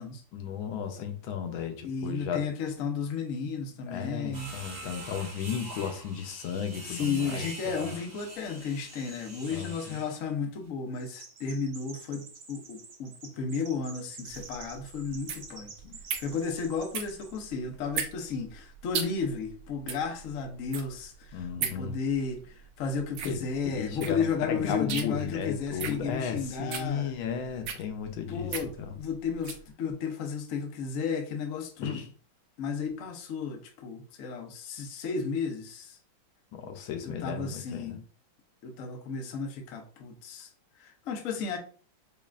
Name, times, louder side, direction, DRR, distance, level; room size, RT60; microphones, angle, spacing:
voice 1, 0.3-2.4 3.9-7.4 7.8-7.9 9.5-10.0 15.8-16.0 21.3-21.9 23.2-28.9 31.8-32.1 36.5-38.0, left 7 dB, 85° left, 1.5 m, -35 dB
voice 2, 1.8-4.5 6.8-12.2 12.5-15.7 16.2-27.1 28.3-32.0 32.6-36.0 37.0-38.0 38.6-40.5 40.8-41.6, left 5 dB, 65° left, 0.8 m, -33 dB
sound 1, 4.3-10.2, right 2 dB, 40° right, 0.9 m, -44 dB
Chirp tweet, 10.9-17.5, right 5 dB, 60° right, 1.1 m, -49 dB
sound 2, 14.3-29.7, right 8 dB, 80° right, 1.4 m, -38 dB
5.3 x 2.4 x 2.4 m
omnidirectional pair, 2.2 m